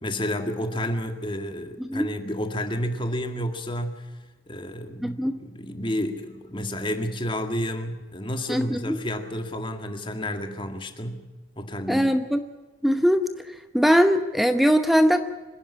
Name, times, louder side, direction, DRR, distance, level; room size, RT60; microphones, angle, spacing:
voice 1, 0.0-4.1 4.5-11.2 11.6-12.1, equal, 25° left, 6 dB, 2.0 m, -30 dB
voice 2, 5.0-5.4 8.5-9.0 11.9-12.4 12.8-15.2, equal, ahead, 8 dB, 0.8 m, -21 dB
26.0 x 11.0 x 9.9 m, 1.2 s
head